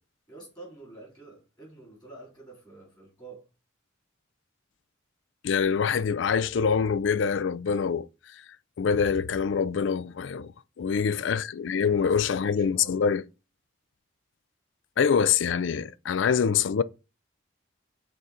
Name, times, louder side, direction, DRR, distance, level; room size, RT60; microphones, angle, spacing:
voice 1, 0.3-3.4 10.9-11.3 11.8-13.0, right 2 dB, 20° left, 3.3 m, -48 dB
voice 2, 5.4-8.1 8.8-10.5 10.8-13.2 15.0-16.8, left 6 dB, 65° left, 0.4 m, -25 dB
6.6 x 3.8 x 4.3 m
head